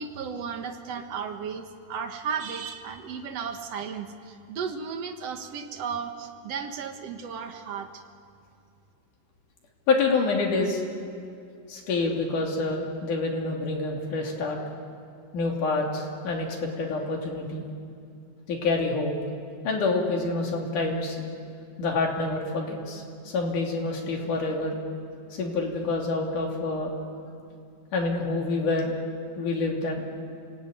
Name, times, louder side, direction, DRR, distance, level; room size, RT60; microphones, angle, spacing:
voice 1, 0.0-8.0, right 6 dB, 60° right, 6 dB, 2.4 m, -34 dB
voice 2, 9.9-10.8 11.7-14.6 15.3-17.7 18.5-19.1 19.6-21.2 21.8-24.8 25.3-27.1 27.9-28.9 29.4-30.0, left 3 dB, 90° left, 0 dB, 4.4 m, -27 dB
28.5 x 18.0 x 9.3 m, 2.5 s
omnidirectional pair, 3.5 m